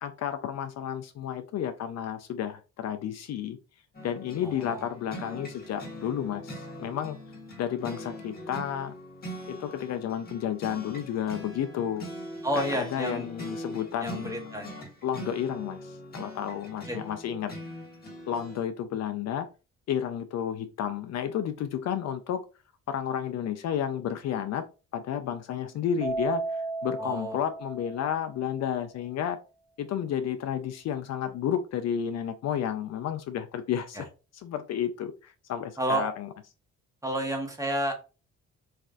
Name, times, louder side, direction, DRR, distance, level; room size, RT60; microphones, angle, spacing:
voice 1, 0.0-3.6 4.0-7.2 7.6-8.9 9.5-12.1 12.5-14.3 15.0-17.5 18.3-19.5 19.9-22.4 22.9-24.7 24.9-29.4 29.8-34.1 34.3-36.3, left 9 dB, 60° left, 0.4 m, -31 dB
sound 1, 3.9-18.6, equal, 30° left, 1.3 m, -42 dB
voice 2, 4.4-4.9 12.4-13.3 14.0-14.7 16.9-17.0 27.0-27.4 33.9-34.0 35.8-36.1 37.0-37.9, right 1 dB, 10° right, 0.9 m, -30 dB
Keyboard (musical), 26.0-28.5, right 3 dB, 85° right, 0.8 m, -34 dB
3.3 x 2.4 x 2.3 m
cardioid pair, 90°, 30 cm